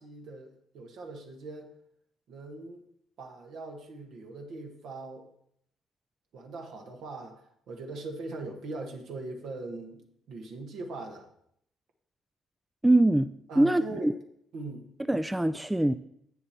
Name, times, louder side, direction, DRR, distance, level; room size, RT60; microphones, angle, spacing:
voice 1, 0.0-1.7 2.3-2.8 3.2-5.3 6.3-11.3 13.5-14.1 14.5-14.9, right 3 dB, 65° right, 1.6 m, -41 dB
voice 2, 12.8-14.1 15.1-15.9, right 1 dB, 10° right, 0.4 m, -23 dB
8.7 x 6.7 x 4.4 m
hypercardioid pair, 50°, 0 cm